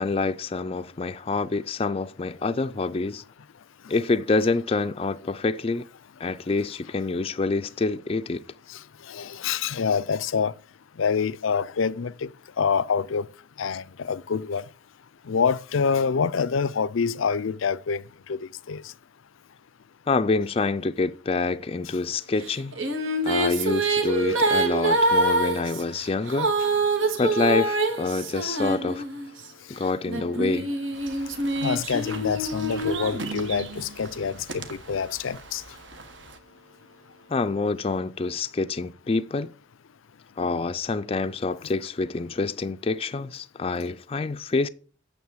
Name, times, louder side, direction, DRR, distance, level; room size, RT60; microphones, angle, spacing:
voice 1, 0.0-3.2 3.9-5.9 6.2-8.4 20.1-22.7 23.2-26.5 27.2-29.0 29.7-30.7 37.3-39.5 40.4-44.7, left 3 dB, 30° left, 0.4 m, -26 dB
voice 2, 9.1-10.5 11.0-12.3 12.6-13.3 13.6-14.6 15.3-18.0 18.3-18.4 18.7-18.8 27.2-27.3 31.6-35.6, left 6 dB, 85° left, 0.5 m, -26 dB
Female singing, 22.5-29.4 30.1-33.8, right 2 dB, 80° right, 2.0 m, -25 dB
sound 1, 30.9-36.4, right 4 dB, 65° right, 1.3 m, -41 dB
9.4 x 6.6 x 7.4 m
head